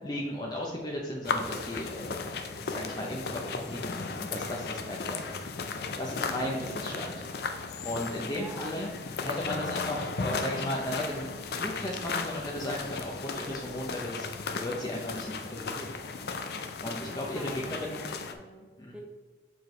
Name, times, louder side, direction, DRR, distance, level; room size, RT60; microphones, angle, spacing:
voice 1, 0.0-2.3 2.6-5.2 6.0-7.2 7.8-8.9 9.2-11.3 11.6-15.9 16.8-18.1 18.8-18.9, left 1 dB, 25° left, -2 dB, 0.7 m, -35 dB
sound 1, 1.2-18.3, left 4 dB, 60° left, 0.5 m, -36 dB
voice 2, 8.2-8.7 17.3-18.7 18.9-19.0, equal, 5° right, 0 dB, 0.9 m, -46 dB
7.3 x 4.5 x 3.2 m, 1.4 s
head